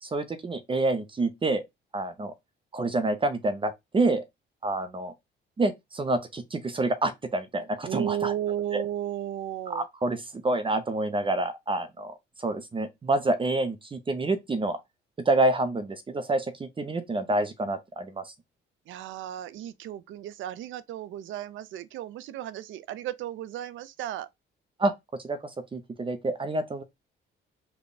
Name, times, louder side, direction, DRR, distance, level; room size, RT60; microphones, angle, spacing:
voice 1, 0.0-1.6 1.9-2.3 2.7-4.2 4.6-5.1 5.6-8.3 8.7-8.8 9.7-14.8 15.3-18.3 24.8-24.9 25.2-25.4 25.7-26.8, right 2 dB, 25° right, 0.5 m, -27 dB
voice 2, 7.9-9.9 18.9-24.3, right 11 dB, 75° right, 0.4 m, -34 dB
3.5 x 2.2 x 3.9 m
cardioid pair, 90°, 20 cm